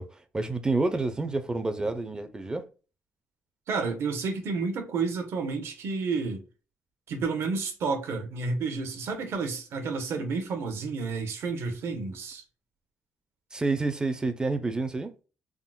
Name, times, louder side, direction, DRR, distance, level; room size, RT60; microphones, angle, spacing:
voice 1, 0.0-2.7 13.5-15.1, right 3 dB, 15° right, 0.4 m, -29 dB
voice 2, 3.7-6.4 7.1-12.4, right 4 dB, 65° right, 0.8 m, -30 dB
3.6 x 2.0 x 2.2 m
cardioid pair, 120°, 5 cm